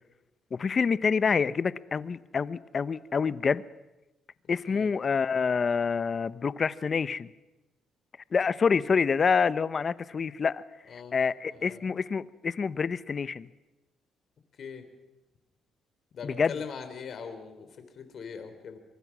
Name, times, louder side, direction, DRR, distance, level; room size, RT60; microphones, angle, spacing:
voice 1, 0.5-3.6 4.5-7.3 8.3-10.6 10.9-13.5 16.2-16.6, left 5 dB, 40° left, 17 dB, 0.8 m, -27 dB
voice 2, 11.5-11.9 14.6-14.8 16.1-18.8, left 6 dB, 55° left, 8 dB, 3.9 m, -41 dB
24.0 x 23.5 x 6.2 m, 1.0 s
cardioid pair, 90°, 0 cm